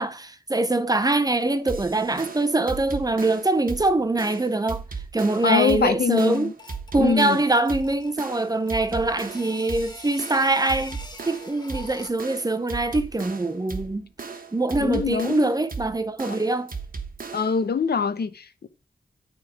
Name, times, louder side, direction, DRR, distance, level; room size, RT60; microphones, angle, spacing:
voice 1, 0.0-4.8 5.1-6.5 6.9-11.0 11.3-14.1 14.5-16.7, right 2 dB, 25° right, 0.7 m, -23 dB
sound 1, 1.7-17.6, right 5 dB, 60° right, 1.2 m, -37 dB
voice 2, 5.4-6.5 7.0-7.4 14.8-15.4 16.3-16.4 17.3-18.7, left 5 dB, 75° left, 0.7 m, -23 dB
sound 2, 6.3-7.0 7.6-12.3, left 3 dB, 25° left, 1.4 m, -44 dB
9.2 x 3.7 x 5.1 m
wide cardioid pair, 80°, 17 cm